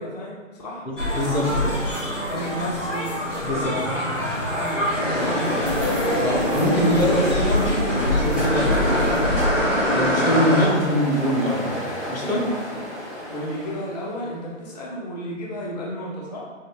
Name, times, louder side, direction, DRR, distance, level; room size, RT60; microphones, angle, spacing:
voice 1, 0.0-0.8 2.3-5.9 12.7-12.8 13.1-16.4, equal, 35° left, -4 dB, 0.5 m, -33 dB
voice 2, 0.8-1.8 3.4-3.8 6.2-9.3 9.9-11.8 12.1-12.4, equal, 85° left, -4 dB, 1.4 m, -23 dB
sound 1, 1.0-9.5, left 1 dB, 65° left, 1.3 m, -26 dB
Ocean, 3.2-14.3, equal, 15° right, 0.5 m, -34 dB
sound 2, 4.9-10.7, left 1 dB, 5° left, 1.2 m, -24 dB
3.9 x 2.5 x 3.2 m, 1.3 s
figure-of-eight pair, 140°, 39 cm